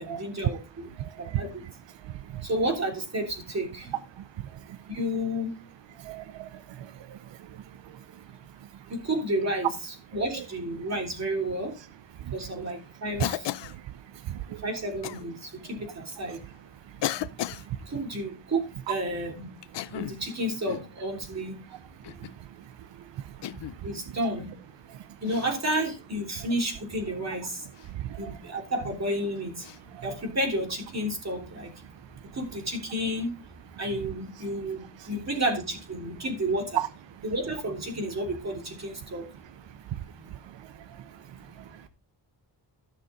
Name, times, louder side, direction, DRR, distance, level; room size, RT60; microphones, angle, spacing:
voice 1, 0.0-0.9 1.2-1.6 2.4-4.0 4.9-5.6 8.9-11.7 12.3-13.5 14.6-16.4 17.9-19.5 19.9-21.6 23.8-24.5 25.2-27.7 28.2-29.7 30.0-31.7 32.3-33.3 33.8-36.8 37.2-39.3, right 1 dB, 40° right, 3.3 m, -31 dB
voice 2, 1.0-1.4 2.3-2.4 6.0-6.5 12.3-12.4 14.5-14.6 28.1-28.3 29.9-30.0 36.8-36.9, right 11 dB, 85° right, 0.6 m, -32 dB
Cough, 13.2-13.8 15.0-15.2 16.1-16.2 17.0-17.7 19.6-20.2 20.7-20.9 22.0-22.4 23.4-23.8 25.2-25.5 27.7-27.9 29.6-29.8, left 13 dB, 75° left, 0.6 m, -34 dB
12.5 x 6.3 x 3.9 m
wide cardioid pair, 110°, 43 cm